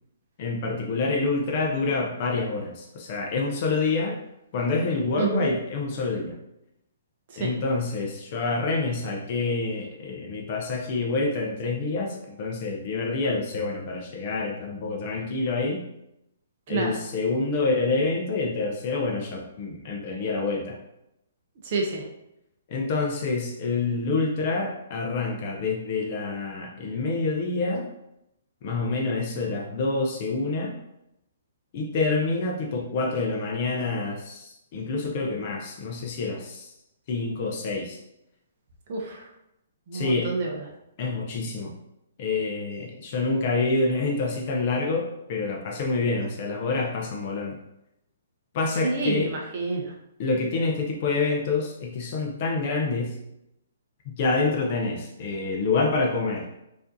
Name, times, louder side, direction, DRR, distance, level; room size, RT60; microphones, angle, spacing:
voice 1, 0.4-4.2 4.5-6.4 7.4-15.8 16.7-20.8 22.7-27.9 28.6-30.7 31.7-36.7 37.1-38.0 39.9-40.3 41.0-41.7 42.2-47.6 48.5-49.3 50.2-53.2 54.1-56.4, left 3 dB, 25° left, 0 dB, 0.4 m, -27 dB
voice 2, 5.2-5.5 7.3-7.5 16.7-16.9 21.6-22.0 38.9-39.2 39.9-40.6 48.8-49.9, right 3 dB, 30° right, 0 dB, 0.5 m, -28 dB
4.8 x 2.6 x 2.5 m, 0.84 s
hypercardioid pair, 180°, 0 cm